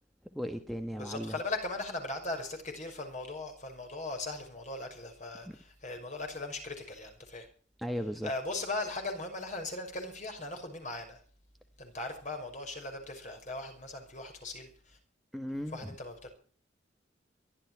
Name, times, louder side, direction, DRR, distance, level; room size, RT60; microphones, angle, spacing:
voice 1, 0.3-1.4 5.5-5.6 7.8-8.3 15.3-15.9, equal, ahead, 7 dB, 1.4 m, -36 dB
voice 2, 0.9-7.5 8.2-11.2 11.8-15.0 15.7-16.3, left 2 dB, 40° left, 5 dB, 5.7 m, -39 dB
23.0 x 12.5 x 4.6 m, 0.43 s
head